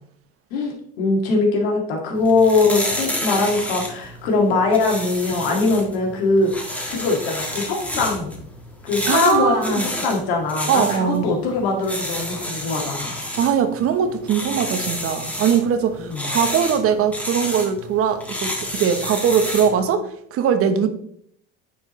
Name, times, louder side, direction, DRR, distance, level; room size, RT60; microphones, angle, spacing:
voice 1, 0.5-8.3 8.8-13.4 16.0-16.3, left 3 dB, 90° left, 0 dB, 2.0 m, -21 dB
sound 1, 2.2-19.8, equal, 5° left, 1.4 m, -30 dB
voice 2, 9.1-9.9 10.7-11.3 13.4-20.9, right 7 dB, 50° right, 9 dB, 1.0 m, -21 dB
9.2 x 4.8 x 3.1 m, 0.67 s
supercardioid pair, 110°, 30 cm